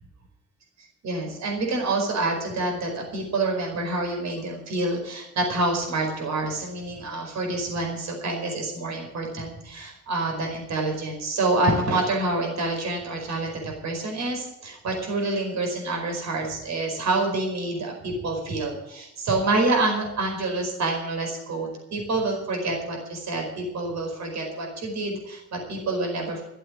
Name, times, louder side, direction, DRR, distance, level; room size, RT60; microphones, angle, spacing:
voice 1, 1.0-26.4, right 2 dB, 65° right, 2 dB, 4.9 m, -27 dB
13.5 x 7.7 x 9.7 m, 0.90 s
cardioid pair, 90°, 30 cm